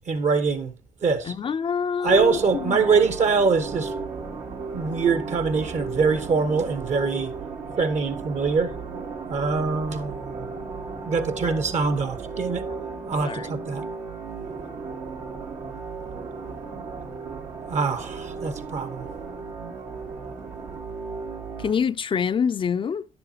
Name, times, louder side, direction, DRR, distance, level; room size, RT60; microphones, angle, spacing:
voice 1, 0.1-0.7 1.0-1.3 2.0-3.9 4.7-7.3 7.8-8.7 9.3-10.5 11.0-12.7 13.1-13.8 17.7-19.1, right 4 dB, 60° right, 1.2 m, -24 dB
voice 2, 1.2-2.8 12.7-12.8 13.2-13.5 21.6-23.1, left 6 dB, 40° left, 0.4 m, -26 dB
sound 1, 2.0-21.7, right 4 dB, 85° right, 1.8 m, -35 dB
10.5 x 6.9 x 2.8 m
supercardioid pair, 55°, 13 cm